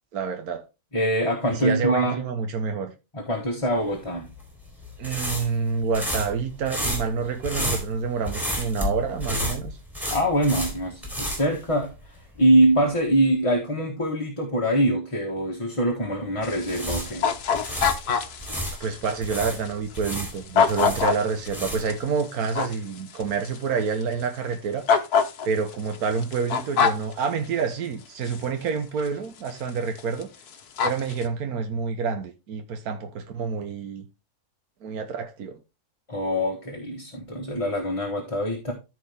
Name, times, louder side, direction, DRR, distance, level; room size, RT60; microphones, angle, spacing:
voice 1, 0.1-0.6 1.5-2.9 5.0-9.8 18.1-18.2 18.8-24.9 25.4-30.3 30.8-34.0 34.8-35.6, right 5 dB, 75° right, 1.6 m, -28 dB
voice 2, 0.9-2.2 3.1-4.3 10.1-11.9 12.4-17.2 36.1-38.7, right 1 dB, 20° left, 1.6 m, -23 dB
sound 1, 4.2-12.3 12.5-12.7 16.4-18.8 19.2-22.0, equal, ahead, 3.8 m, -31 dB
sound 2, 16.4-23.6 24.0-24.1 24.9-27.1 28.3-28.4 29.0-29.1 29.5-29.7 30.0-30.2 30.5-31.2, left 6 dB, 85° left, 1.6 m, -25 dB
14.0 x 4.8 x 3.5 m
omnidirectional pair, 1.6 m